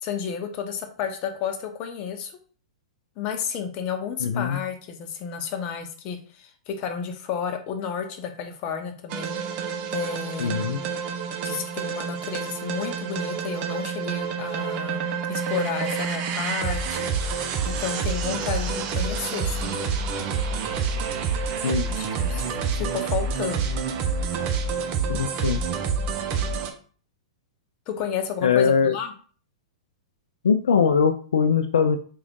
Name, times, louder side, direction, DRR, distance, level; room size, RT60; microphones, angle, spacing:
voice 1, 0.0-2.3 3.2-9.4 9.9-10.5 11.4-17.1 17.6-19.8 21.9-23.7 27.9-29.1, left 7 dB, 40° left, 5 dB, 0.8 m, -31 dB
voice 2, 4.2-4.6 10.4-10.8 21.6-21.9 25.1-25.6 28.4-28.9 30.4-32.0, left 6 dB, 85° left, 7 dB, 0.4 m, -21 dB
sound 1, 9.1-26.7, right 5 dB, 40° right, 0.7 m, -28 dB
3.6 x 2.5 x 3.6 m, 0.42 s
hypercardioid pair, 120°, 3 cm